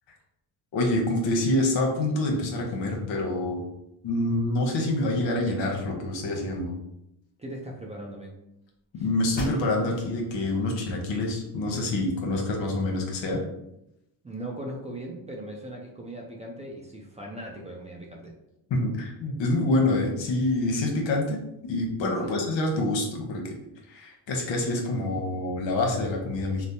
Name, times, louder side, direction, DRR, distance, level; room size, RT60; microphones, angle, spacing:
voice 1, 0.7-3.6 4.0-6.7 9.0-13.4 18.7-21.4 21.6-23.5 23.9-26.7, left 2 dB, 70° left, 0 dB, 0.9 m, -26 dB
voice 2, 7.4-8.4 14.2-18.3 22.2-22.3, right 1 dB, 15° right, -1 dB, 0.4 m, -39 dB
sound 1, 8.8-8.9 9.3-10.1 10.6-10.7 11.2-12.1, left 1 dB, 20° left, 1.3 m, -39 dB
3.2 x 2.0 x 2.7 m, 0.83 s
supercardioid pair, 75°, 47 cm